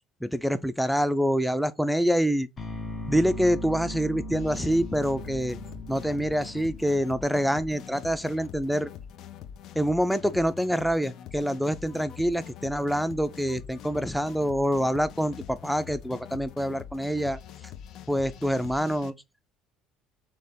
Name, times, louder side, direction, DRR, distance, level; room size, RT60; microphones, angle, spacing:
voice 1, 0.2-2.5 3.1-5.6 5.9-8.9 9.8-17.4 18.1-19.1, equal, ahead, 0.5 m, -26 dB
sound 1, 2.6-8.6, equal, 35° left, 0.9 m, -39 dB
sound 2, 4.3-19.1, left 9 dB, 60° left, 0.5 m, -44 dB
3.4 x 2.9 x 4.1 m
supercardioid pair, 90°, 0 cm